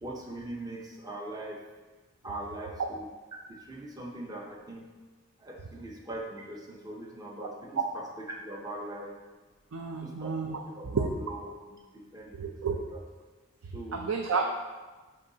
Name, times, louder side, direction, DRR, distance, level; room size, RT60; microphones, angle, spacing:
voice 1, 0.0-1.6 2.2-3.1 3.5-4.9 5.4-9.1 10.0-10.3 10.8-13.0 13.7-14.1, right 1 dB, 20° right, -1 dB, 0.7 m, -41 dB
voice 2, 9.7-11.1 12.3-12.8 13.6-14.5, right 4 dB, 85° right, 2 dB, 0.5 m, -31 dB
10.5 x 3.9 x 2.8 m, 1.3 s
head